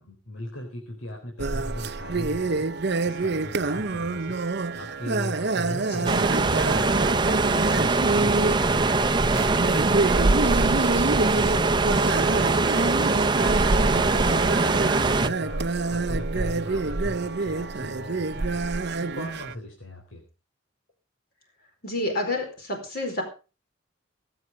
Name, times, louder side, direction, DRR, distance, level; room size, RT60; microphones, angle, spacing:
voice 1, 0.0-10.0 10.4-13.6 13.9-20.2, left 1 dB, 85° left, 1 dB, 4.2 m, -38 dB
sound 1, 1.4-19.5, right 3 dB, 55° right, 0.8 m, -27 dB
sound 2, 6.1-15.3, right 3 dB, 25° right, 0.8 m, -22 dB
voice 2, 21.8-23.2, left 2 dB, 50° left, 3 dB, 4.7 m, -29 dB
22.0 x 8.2 x 5.1 m, 0.34 s
head